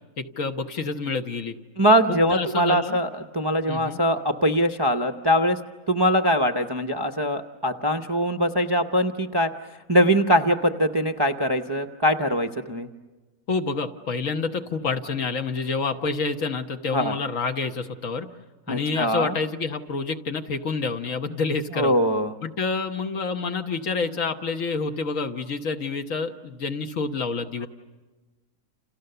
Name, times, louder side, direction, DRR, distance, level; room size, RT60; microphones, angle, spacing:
voice 1, 0.2-1.6 2.1-3.0 3.7-4.0 13.5-18.3 18.7-21.9 22.4-27.7, left 4 dB, 55° left, 6 dB, 1.5 m, -28 dB
voice 2, 1.8-5.6 5.9-9.5 9.9-12.9 16.9-17.2 18.7-19.3 21.7-22.3, equal, 25° right, 5 dB, 0.6 m, -22 dB
30.0 x 28.5 x 6.8 m, 1.3 s
omnidirectional pair, 1.7 m